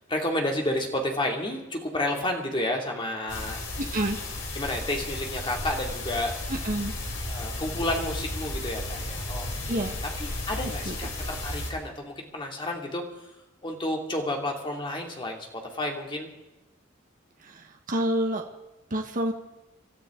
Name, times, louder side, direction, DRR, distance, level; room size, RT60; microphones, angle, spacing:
voice 1, 0.1-3.6 4.5-6.3 7.3-13.2 13.6-16.3, left 1 dB, 25° left, 1 dB, 2.6 m, -31 dB
sound 1, 3.3-11.7, left 2 dB, 65° left, 4.1 m, -34 dB
voice 2, 3.8-4.2 6.5-6.9 9.7-9.9 10.9-11.0 17.4-18.4 18.9-19.3, right 1 dB, 40° right, 3 dB, 1.3 m, -28 dB
26.0 x 13.0 x 3.8 m, 0.99 s
head